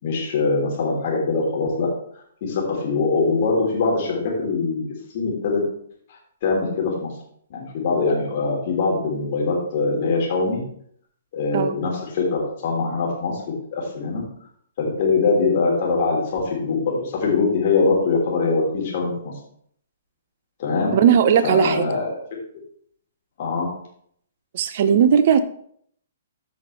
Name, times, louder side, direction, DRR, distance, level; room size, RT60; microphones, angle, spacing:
voice 1, 0.0-1.9 2.4-4.9 5.1-5.6 6.1-7.1 7.5-10.6 11.3-13.4 13.7-14.2 14.8-19.3 20.6-20.9 21.4-22.2 23.4-23.7, left 4 dB, 45° left, -2 dB, 3.5 m, -22 dB
voice 2, 20.9-21.9 24.5-25.4, right 7 dB, 50° right, 12 dB, 0.8 m, -17 dB
14.0 x 5.8 x 3.3 m, 0.65 s
figure-of-eight pair, 125°, 0 cm